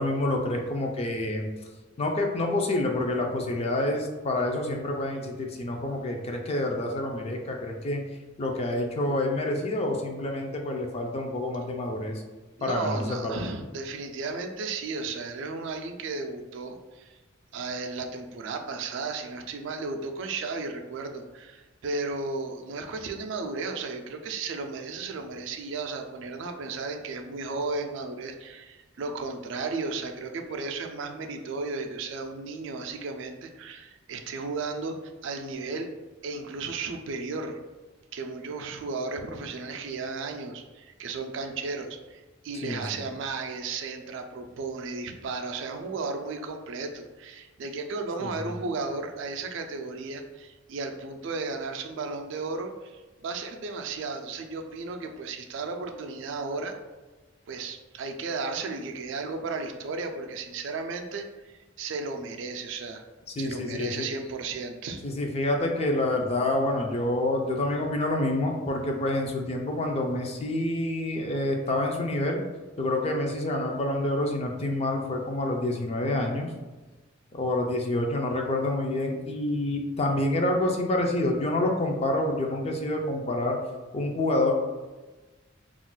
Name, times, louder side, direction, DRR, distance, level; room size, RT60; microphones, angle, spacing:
voice 1, 0.0-1.5 2.0-8.0 8.4-12.2 12.6-13.4 42.6-43.0 48.2-48.5 63.4-64.1 65.0-72.4 72.8-76.5 77.3-83.6 83.9-84.5, left 1 dB, 30° left, 2 dB, 0.4 m, -28 dB
voice 2, 12.6-17.2 17.5-35.0 35.2-35.9 36.2-37.6 38.1-56.7 57.5-63.0 63.4-65.0, right 3 dB, 65° right, 5 dB, 0.3 m, -34 dB
2.4 x 2.1 x 3.8 m, 1.2 s
head